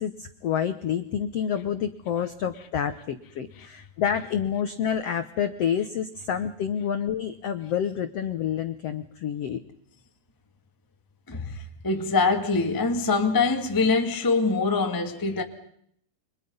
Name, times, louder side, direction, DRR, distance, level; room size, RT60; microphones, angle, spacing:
voice 1, 0.0-9.6, left 8 dB, 80° left, 1.4 m, -28 dB
voice 2, 11.3-15.4, left 4 dB, 25° left, 0.4 m, -24 dB
29.5 x 26.0 x 5.5 m
omnidirectional pair, 4.5 m